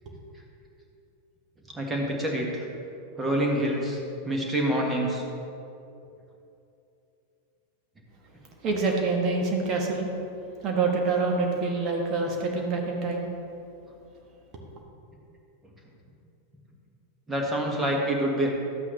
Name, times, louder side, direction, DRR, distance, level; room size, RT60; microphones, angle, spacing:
voice 1, 1.7-2.6 3.2-5.2 17.3-18.5, right 1 dB, 15° right, 0 dB, 1.6 m, -26 dB
voice 2, 8.6-10.1 10.6-13.3, right 3 dB, 35° right, 0 dB, 1.4 m, -26 dB
12.0 x 8.1 x 3.1 m, 2.7 s
figure-of-eight pair, 90°, 0 cm